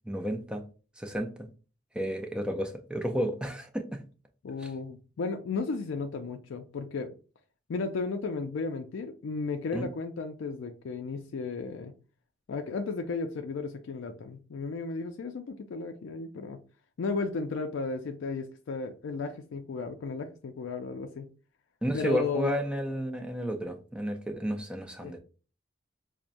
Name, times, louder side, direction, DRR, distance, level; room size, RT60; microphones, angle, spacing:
voice 1, 0.1-0.6 1.0-1.5 1.9-4.0 9.7-9.9 21.8-25.2, right 1 dB, 5° right, 0.4 m, -32 dB
voice 2, 4.4-7.1 7.7-11.9 12.5-16.6 17.0-21.3 21.9-22.6 25.0-25.1, left 4 dB, 75° left, 0.4 m, -34 dB
5.7 x 2.1 x 2.5 m
head